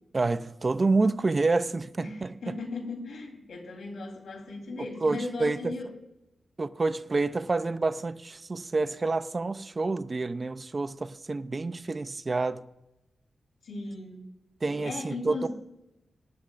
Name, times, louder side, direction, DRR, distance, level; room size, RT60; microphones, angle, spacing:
voice 1, 0.1-2.4 5.0-5.7 6.6-12.6 14.6-15.5, right 3 dB, 25° right, 0.5 m, -28 dB
voice 2, 2.0-5.9 13.6-14.3 14.8-15.5, left 3 dB, 70° left, 3.4 m, -37 dB
23.0 x 11.5 x 2.5 m
wide cardioid pair, 180°, 0 cm